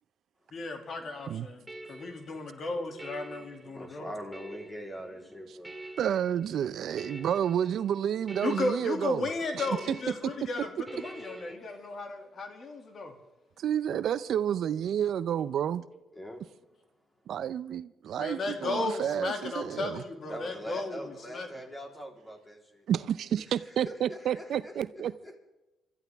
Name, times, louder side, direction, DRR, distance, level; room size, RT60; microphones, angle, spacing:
voice 1, 0.5-1.6 1.9-4.1 8.4-13.1 18.2-21.0 21.3-21.5, left 3 dB, 50° left, 2.4 m, -34 dB
sound 1, 1.0-11.5, right 2 dB, 15° right, 2.1 m, -47 dB
voice 2, 3.8-5.8 16.1-16.4 20.3-22.9 23.8-25.4, equal, 15° left, 3.6 m, -43 dB
voice 3, 6.0-9.3 9.5-10.0 10.2-10.7 13.6-15.8 17.3-20.0 22.9-25.1, right 9 dB, 70° right, 0.5 m, -30 dB
25.5 x 13.5 x 3.5 m
cardioid pair, 90°, 0 cm